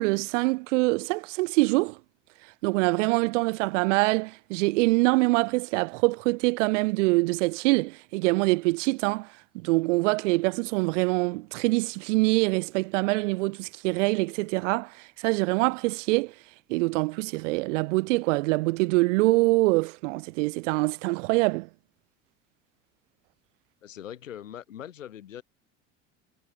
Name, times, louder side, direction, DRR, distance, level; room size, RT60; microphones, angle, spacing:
voice 1, 0.0-2.0 2.6-9.3 9.6-16.3 16.7-21.7, right 24 dB, 70° right, 3.7 m, -24 dB
voice 2, 23.8-25.4, left 10 dB, 85° left, 5.1 m, -41 dB
hypercardioid pair, 65°, 38 cm